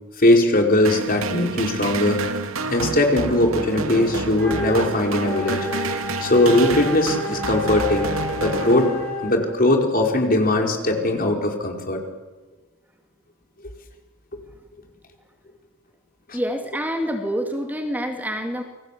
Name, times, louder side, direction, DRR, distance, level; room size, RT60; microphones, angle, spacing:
voice 1, 0.2-2.2 2.7-5.7 6.2-8.1 8.4-8.9 9.2-12.0 16.3-16.4, left 1 dB, 45° left, 2 dB, 5.1 m, -20 dB
sound 1, 0.8-9.3, right 3 dB, 90° right, 2.2 m, -29 dB
Wind instrument woodwind instrument, 4.3-9.5, left 3 dB, 10° left, 6.9 m, -31 dB
voice 2, 16.3-18.6, equal, 10° right, 4 dB, 2.5 m, -27 dB
29.5 x 23.5 x 8.6 m, 1.2 s
head